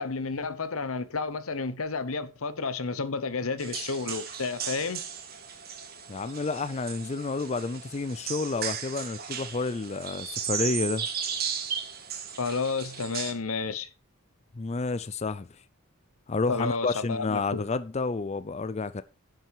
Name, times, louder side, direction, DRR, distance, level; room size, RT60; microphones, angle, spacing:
voice 1, 0.0-5.0 12.4-13.9 16.5-17.6, left 4 dB, 75° left, 1.0 m, -31 dB
sound 1, 3.6-13.3, right 8 dB, 45° right, 1.5 m, -36 dB
voice 2, 6.1-11.1 14.6-15.5 16.3-19.0, left 3 dB, 30° left, 0.4 m, -30 dB
10.5 x 6.2 x 4.7 m
head